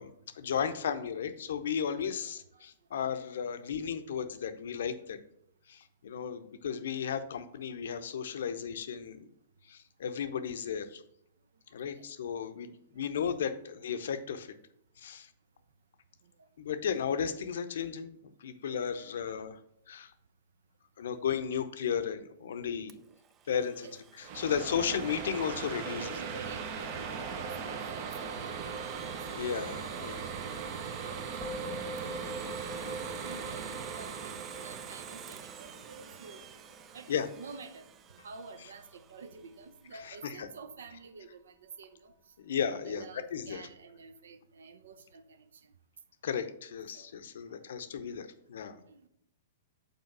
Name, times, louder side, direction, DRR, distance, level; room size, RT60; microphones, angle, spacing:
voice 1, 0.0-5.2 5.7-9.2 9.7-11.0 11.7-14.5 15.0-15.3 16.6-19.6 19.9-20.1 21.0-23.0 23.5-23.9 24.3-26.1 29.3-30.2 32.2-32.4 37.1-37.3 40.1-40.5 42.4-43.1 43.3-43.6 46.2-48.8, left 7 dB, 70° left, 10 dB, 0.6 m, -34 dB
voice 2, 1.9-2.6 6.2-6.3 11.9-12.4 16.2-16.5 19.3-19.5 21.1-21.5 23.8-24.0 25.9-30.7 31.0-31.7 32.3-32.6 33.1-36.4 36.9-42.3 42.7-45.7 46.9-47.7 48.9-49.1, right 4 dB, 75° right, 11 dB, 0.6 m, -50 dB
Domestic sounds home sounds, 22.9-39.7, right 9 dB, 25° right, 0.3 m, -52 dB
sound 1, 24.2-37.6, right 6 dB, 45° right, 0.8 m, -39 dB
Musical instrument, 31.4-40.9, equal, 10° left, 1.0 m, -48 dB
5.4 x 4.4 x 5.9 m, 0.76 s
hypercardioid pair, 115°, 0 cm